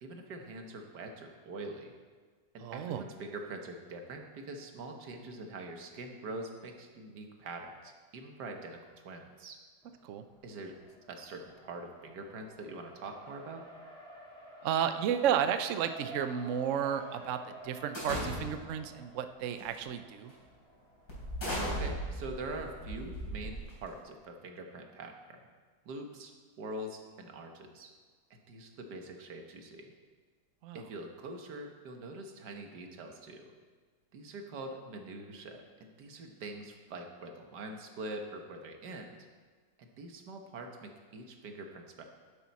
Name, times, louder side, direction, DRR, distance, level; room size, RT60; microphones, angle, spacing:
voice 1, 0.0-1.9 2.5-9.6 10.4-10.8 11.1-13.6 21.4-25.4 25.9-26.3 26.6-27.9 28.3-29.9 30.7-33.5 34.1-39.1 39.8-42.0, right 2 dB, 80° right, 4 dB, 1.8 m, -44 dB
voice 2, 2.6-3.0 10.0-10.2 14.6-20.3 30.6-30.8, right 9 dB, 65° right, 9 dB, 0.8 m, -32 dB
Race car auto racing, 9.8-22.4, equal, 5° left, 2.8 m, -52 dB
sound 1, 17.9-18.8 19.6-19.8 20.3-20.4 21.1-24.0, equal, 70° left, 4.3 m, -37 dB
11.0 x 10.5 x 4.2 m, 1.5 s
omnidirectional pair, 1.8 m